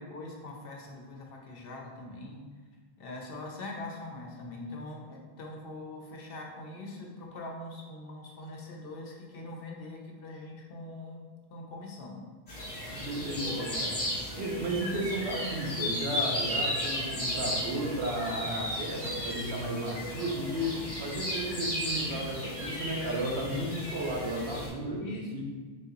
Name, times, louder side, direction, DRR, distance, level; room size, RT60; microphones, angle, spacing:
voice 1, 0.0-2.4 3.0-12.2 13.3-13.9 24.9-25.4, left 2 dB, 65° left, 0 dB, 0.9 m, -42 dB
sound 1, 12.5-24.7, equal, 35° left, 1.6 m, -34 dB
voice 2, 12.9-13.9 14.3-25.0 25.3-25.4, right 1 dB, 85° right, 0 dB, 1.0 m, -34 dB
3.7 x 2.7 x 3.8 m, 1.5 s
omnidirectional pair, 1.1 m